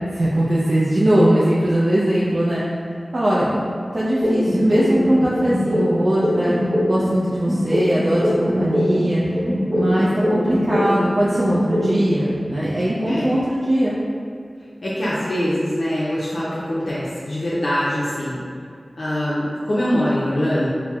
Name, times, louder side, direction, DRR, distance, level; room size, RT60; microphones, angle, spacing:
voice 1, 0.1-2.6 3.1-3.6 3.9-6.6 6.9-9.2 9.7-14.0, right 1 dB, 55° right, -8 dB, 0.4 m, -20 dB
sound 1, 4.2-7.2 7.5-11.2 11.5-12.2, equal, 10° left, 0.8 m, -21 dB
voice 2, 14.8-18.4 19.0-20.7, equal, 65° left, -9 dB, 0.4 m, -23 dB
4.1 x 2.0 x 2.3 m, 2.3 s
wide cardioid pair, 65°, 0 cm